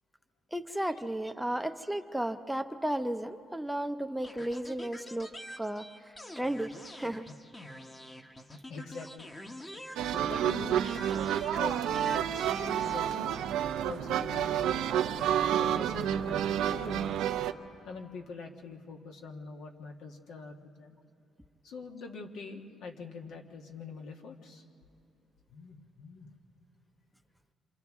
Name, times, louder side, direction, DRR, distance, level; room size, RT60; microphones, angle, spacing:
voice 1, 0.5-5.3 5.6-5.9 6.4-6.7 7.0-7.3, right 1 dB, 5° right, 9 dB, 0.6 m, -33 dB
sound 1, 4.2-10.5 10.8-13.0, left 1 dB, 20° left, 1.0 m, -46 dB
voice 2, 8.4-9.3 10.0-10.8 11.5-13.4 13.8-17.3 17.8-21.0 21.6-24.6 25.5-26.3, left 4 dB, 80° left, 2 dB, 1.4 m, -44 dB
sound 2, 10.0-17.5, right 10 dB, 85° right, 0.5 m, -29 dB
27.5 x 26.0 x 3.6 m, 2.6 s
cardioid pair, 90°, 0 cm